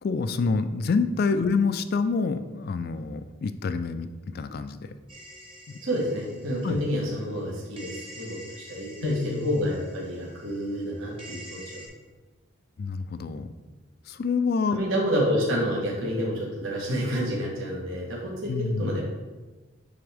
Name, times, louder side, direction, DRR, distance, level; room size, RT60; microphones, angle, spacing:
voice 1, 0.0-4.9 5.7-5.8 6.6-6.8 9.0-9.5 12.8-13.5 14.1-14.8 18.5-19.0, left 4 dB, 45° left, 11 dB, 0.3 m, -27 dB
sound 1, 5.1-7.4 7.8-11.9, equal, 25° right, 1.2 m, -47 dB
voice 2, 5.8-11.8 14.7-19.0, equal, 70° right, -3 dB, 1.4 m, -29 dB
9.3 x 3.5 x 3.4 m, 1.2 s
head